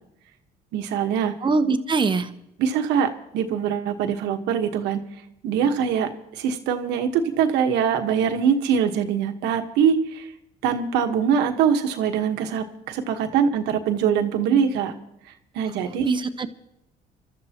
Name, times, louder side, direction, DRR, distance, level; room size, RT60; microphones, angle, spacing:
voice 1, 0.7-1.3 2.6-5.0 5.4-10.3 10.6-14.9 15.5-16.1, right 7 dB, 90° right, 5 dB, 1.4 m, -23 dB
voice 2, 1.4-2.3 16.0-16.5, right 4 dB, 30° right, 9 dB, 1.0 m, -22 dB
27.0 x 13.0 x 3.0 m, 0.79 s
cardioid pair, 110°, 17 cm